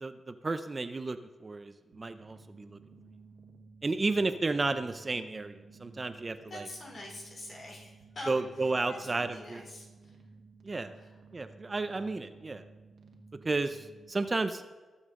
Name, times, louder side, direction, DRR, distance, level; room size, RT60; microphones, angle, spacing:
voice 1, 0.0-2.8 3.8-6.7 8.3-9.6 10.6-10.9 11.3-12.6 13.4-14.6, right 3 dB, 30° right, 10 dB, 0.5 m, -32 dB
sound 1, 1.9-14.1, right 4 dB, 80° right, 1.4 m, -55 dB
voice 2, 6.5-10.1 10.9-11.1, left 1 dB, 50° left, -1 dB, 3.1 m, -45 dB
19.5 x 7.1 x 3.7 m, 1.3 s
wide cardioid pair, 115°, 0 cm